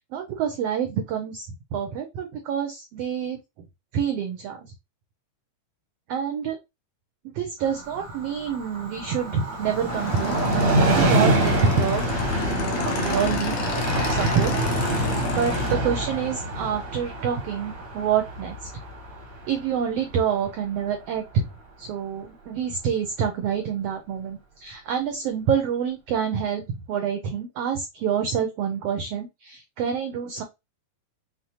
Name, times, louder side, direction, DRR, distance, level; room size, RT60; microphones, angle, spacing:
voice 1, 0.0-3.4 3.9-4.7 6.1-6.6 7.2-10.4 10.9-12.0 12.3-13.5 14.1-14.5 15.3-18.6 19.5-21.5 21.8-30.4, right 7 dB, 85° right, 5 dB, 1.3 m, -27 dB
Train, 7.6-20.9 21.3-21.4, right 1 dB, 70° right, 0.8 m, -26 dB
Motorcycle / Engine, 9.9-15.7, left 6 dB, 70° left, 2.0 m, -31 dB
6.3 x 2.1 x 2.8 m, 0.22 s
omnidirectional pair, 3.5 m